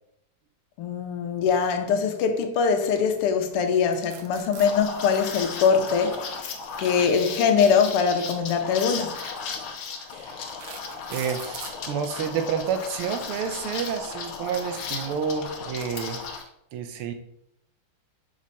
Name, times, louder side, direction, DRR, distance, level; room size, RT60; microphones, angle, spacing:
voice 1, 0.8-9.1, left 6 dB, 90° left, 1.7 m, -23 dB
sound 1, 3.9-4.7 6.1-7.6 8.7-8.9 9.5-9.6 10.2-11.8, right 6 dB, 60° right, 1.1 m, -42 dB
Liquid, 4.6-16.4, left 5 dB, 70° left, 1.6 m, -35 dB
voice 2, 11.1-16.2 16.7-17.1, right 6 dB, 85° right, 1.6 m, -29 dB
6.3 x 4.2 x 4.0 m
omnidirectional pair, 2.4 m